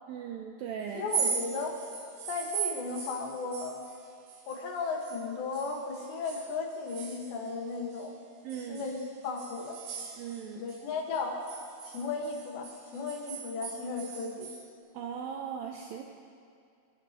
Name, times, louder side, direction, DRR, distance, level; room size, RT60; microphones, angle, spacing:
voice 1, 0.1-1.1 8.4-8.9 10.2-10.6 14.9-16.0, right 8 dB, 80° right, 2 dB, 2.0 m, -38 dB
voice 2, 0.9-1.8 2.3-3.8 4.5-8.2 8.7-9.0 9.2-9.8 10.5-11.4 11.8-14.5, left 4 dB, 85° left, 0 dB, 3.9 m, -35 dB
sound 1, 1.0-5.2 5.5-8.1 8.5-10.8 11.1-14.6, right 7 dB, 65° right, 2.5 m, -39 dB
29.0 x 11.0 x 3.0 m, 2.3 s
omnidirectional pair, 4.8 m